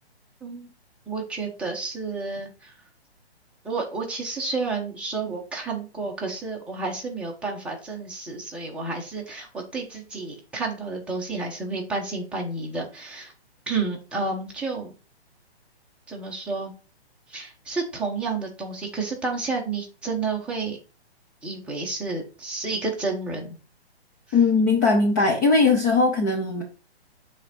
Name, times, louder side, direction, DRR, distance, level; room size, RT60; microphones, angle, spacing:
voice 1, 1.1-2.7 3.6-13.3 13.7-14.9 16.1-16.7 17.3-20.8 21.4-23.6, right 3 dB, 5° right, -2 dB, 1.0 m, -30 dB
voice 2, 24.3-26.6, left 3 dB, 20° left, 1 dB, 0.6 m, -19 dB
7.8 x 3.6 x 4.2 m, 0.34 s
hypercardioid pair, 150°, 33 cm